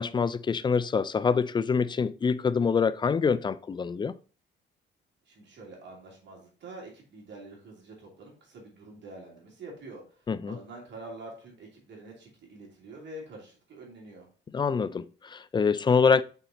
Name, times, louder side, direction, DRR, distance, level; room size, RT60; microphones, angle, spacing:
voice 1, 0.0-4.1 10.3-10.6 14.5-16.2, left 5 dB, 25° left, 0.4 m, -25 dB
voice 2, 5.3-10.0 10.4-14.3, right 2 dB, 65° right, 2.9 m, -46 dB
5.8 x 4.0 x 4.0 m
cardioid pair, 90°, 20 cm